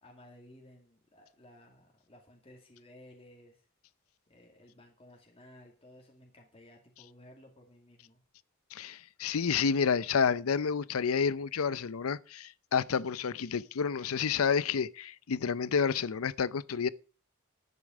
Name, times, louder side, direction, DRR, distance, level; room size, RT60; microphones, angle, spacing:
voice 1, 0.0-3.7 4.3-8.2, left 1 dB, 30° left, 2.2 m, -56 dB
voice 2, 8.7-16.9, left 6 dB, 80° left, 0.5 m, -30 dB
10.5 x 8.4 x 5.2 m
head